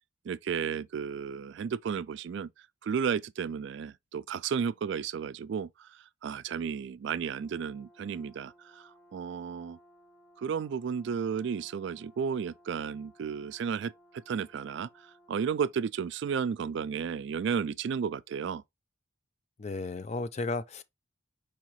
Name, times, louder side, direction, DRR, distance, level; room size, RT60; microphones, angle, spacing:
voice 1, 0.3-2.5 2.8-9.8 10.4-18.6, right 6 dB, 60° right, 0.3 m, -33 dB
Brass instrument, 7.1-15.8, equal, 60° left, 3.0 m, -61 dB
voice 2, 19.6-20.8, left 3 dB, 35° left, 0.4 m, -34 dB
4.8 x 3.7 x 3.0 m
head